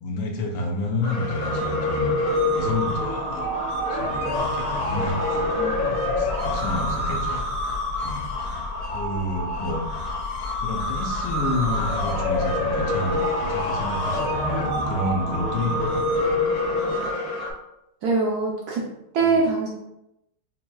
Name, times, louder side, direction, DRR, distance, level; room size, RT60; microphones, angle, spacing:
voice 1, 0.0-3.5 3.9-5.2 5.8-7.4 8.0-8.3 8.9-9.8 10.6-16.0 19.2-19.4, left 2 dB, 75° left, 1 dB, 1.4 m, -29 dB
sound 1, 1.0-17.5, left 1 dB, 60° left, 1.0 m, -26 dB
voice 2, 5.5-5.8 18.0-18.8 19.1-19.7, right 4 dB, 70° right, -2 dB, 0.9 m, -23 dB
5.8 x 2.3 x 2.3 m, 0.86 s
omnidirectional pair, 2.2 m